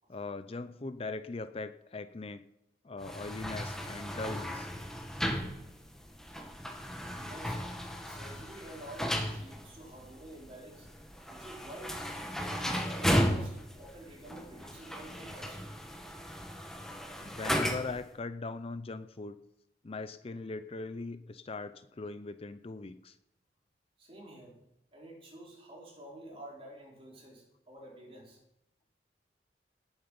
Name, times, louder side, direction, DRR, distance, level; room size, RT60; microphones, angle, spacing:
voice 1, 0.1-2.4 2.8-4.7 17.2-19.4 19.8-23.2, left 3 dB, 35° left, 11 dB, 0.5 m, -40 dB
sound 1, 3.0-18.1, equal, 5° left, 1.7 m, -35 dB
voice 2, 7.1-7.6 8.0-10.9 11.3-12.0 12.5-15.7 24.0-24.6 24.9-28.4, right 1 dB, 30° right, -2 dB, 4.3 m, -49 dB
18.5 x 8.0 x 5.3 m, 0.82 s
head